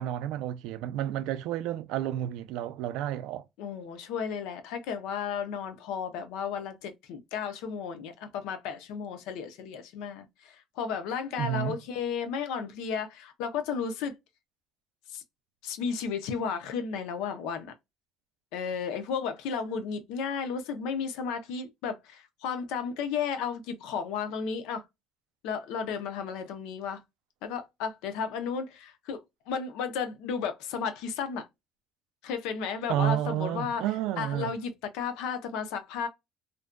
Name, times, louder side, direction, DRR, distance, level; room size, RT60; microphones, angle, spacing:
voice 1, 0.0-3.4 11.4-11.8 32.9-34.5, right 12 dB, 75° right, 0.3 m, -31 dB
voice 2, 3.6-14.1 15.1-15.2 15.6-17.7 18.5-24.8 25.4-27.0 27.4-29.2 29.5-31.5 32.2-33.8 34.2-36.1, left 6 dB, 85° left, 0.5 m, -33 dB
2.5 x 2.1 x 2.3 m
cardioid pair, 150°, 0 cm